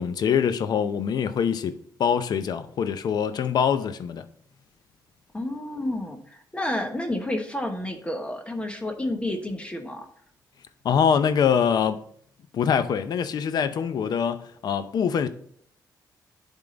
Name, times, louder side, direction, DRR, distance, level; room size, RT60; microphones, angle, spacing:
voice 1, 0.0-4.2 10.8-12.0 12.5-15.3, left 7 dB, 65° left, 0.6 m, -24 dB
voice 2, 5.3-10.1, left 1 dB, 15° left, 1.1 m, -30 dB
10.5 x 3.7 x 3.9 m
cardioid pair, 110°, 7 cm